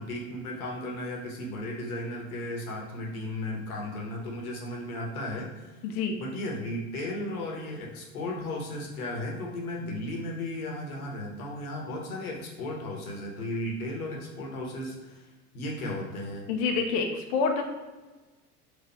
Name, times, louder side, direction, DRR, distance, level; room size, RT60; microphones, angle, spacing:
voice 1, 0.0-5.8 6.2-15.3 15.5-16.5, left 1 dB, 65° left, -1 dB, 1.1 m, -35 dB
voice 2, 5.8-6.2 16.5-17.6, left 5 dB, 45° left, 3 dB, 0.7 m, -27 dB
4.3 x 2.5 x 4.4 m, 1.2 s
figure-of-eight pair, 75°, 46 cm